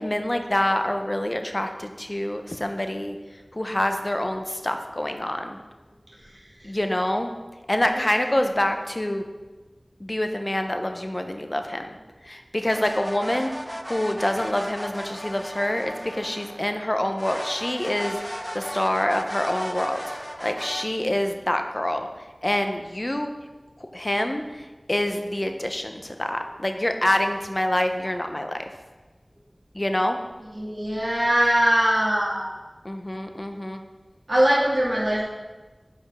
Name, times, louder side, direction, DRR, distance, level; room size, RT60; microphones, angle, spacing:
voice 1, 0.0-3.2 3.5-5.6 6.6-7.3 7.7-9.2 10.0-12.0 12.2-13.5 13.8-20.0 20.4-22.1 22.4-23.3 23.8-28.6 29.7-30.2 32.8-33.8, left 1 dB, 35° left, 6 dB, 0.7 m, -26 dB
sound 1, 12.7-16.8 17.2-20.9, equal, 5° right, 0.5 m, -35 dB
voice 2, 30.5-32.5 34.3-35.2, equal, 60° right, -7 dB, 2.3 m, -21 dB
8.7 x 5.2 x 3.6 m, 1.2 s
wide cardioid pair, 45°, 0 cm